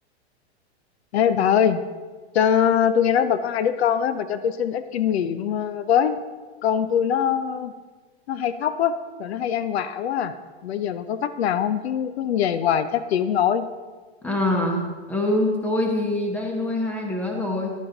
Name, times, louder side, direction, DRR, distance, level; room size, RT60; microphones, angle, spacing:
voice 1, 1.1-1.8 2.3-6.2 6.6-7.7 8.3-8.9 9.2-10.3 10.6-13.7, left 8 dB, 65° left, 12 dB, 0.7 m, -22 dB
voice 2, 14.2-17.7, left 1 dB, 5° left, 1 dB, 1.1 m, -24 dB
11.0 x 9.5 x 4.0 m, 1.4 s
supercardioid pair, 160°, 34 cm